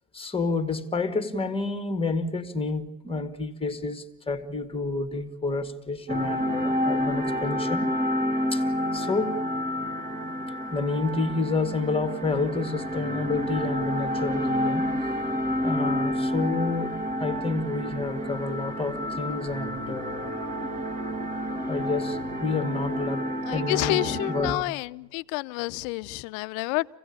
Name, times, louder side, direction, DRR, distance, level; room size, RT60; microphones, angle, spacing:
voice 1, 0.1-7.9 8.5-8.7 8.9-9.4 10.7-14.9 15.6-16.9 17.2-20.3 21.6-23.3 23.5-24.7, left 3 dB, 10° left, 1.9 m, -29 dB
sound 1, 6.1-24.5, equal, 15° right, 1.9 m, -29 dB
voice 2, 23.4-26.9, left 22 dB, 55° left, 0.8 m, -29 dB
26.0 x 17.0 x 8.7 m
hypercardioid pair, 95°, 49 cm